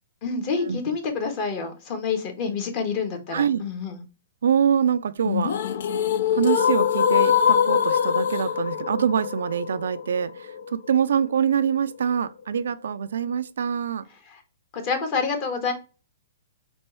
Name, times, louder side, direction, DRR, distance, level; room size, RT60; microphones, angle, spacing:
voice 1, 0.2-4.0 14.7-15.7, left 5 dB, 40° left, 1.4 m, -28 dB
voice 2, 3.3-3.6 4.4-5.5 6.3-14.0, right 8 dB, 75° right, 0.3 m, -24 dB
sound 1, 5.3-11.3, left 8 dB, 65° left, 0.5 m, -23 dB
4.3 x 2.6 x 4.5 m
hypercardioid pair, 135°, 0 cm